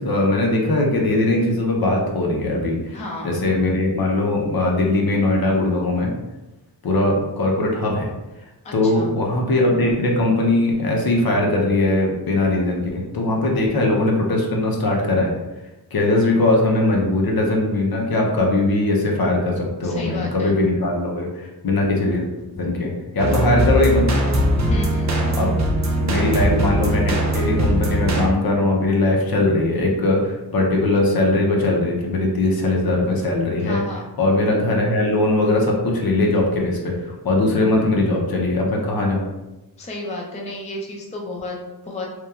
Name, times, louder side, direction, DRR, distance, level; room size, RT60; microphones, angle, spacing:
voice 1, 0.0-3.0 3.2-6.1 6.8-8.1 8.7-15.3 15.9-22.3 22.5-24.1 25.4-25.5 26.0-33.8 34.2-39.2, left 2 dB, 60° left, -1 dB, 0.6 m, -20 dB
voice 2, 2.9-3.4 8.6-9.1 19.8-20.5 24.7-25.1 33.6-34.0 39.8-41.6 41.8-42.1, left 2 dB, 20° left, -2 dB, 0.4 m, -32 dB
sound 1, 23.2-28.3, equal, 45° right, 0.5 m, -20 dB
2.9 x 2.2 x 2.3 m, 1.0 s
wide cardioid pair, 105°, 41 cm